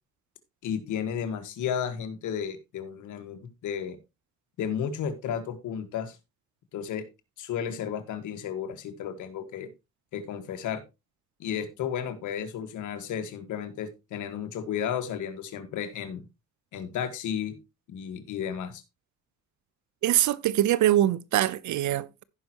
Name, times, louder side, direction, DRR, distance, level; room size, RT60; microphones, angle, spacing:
voice 1, 0.6-4.0 4.6-6.2 6.7-7.1 7.4-9.7 10.1-10.8 11.4-16.3 16.7-17.6 17.9-18.8, left 8 dB, 80° left, 1.6 m, -33 dB
voice 2, 20.0-22.2, right 13 dB, 70° right, 0.7 m, -23 dB
15.5 x 5.4 x 2.9 m
cardioid pair, 90°, 30 cm